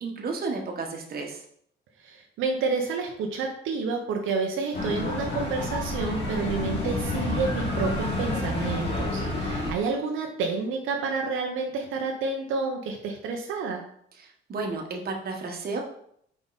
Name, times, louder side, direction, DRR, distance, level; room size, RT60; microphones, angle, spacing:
voice 1, 0.0-1.4 14.2-15.8, right 3 dB, 50° right, 1 dB, 1.4 m, -32 dB
voice 2, 2.0-13.8, right 4 dB, 90° right, 1 dB, 0.9 m, -29 dB
sound 1, 4.7-9.7, left 1 dB, 60° left, 2.3 m, -29 dB
5.4 x 4.8 x 4.1 m, 0.67 s
cardioid pair, 90°, 20 cm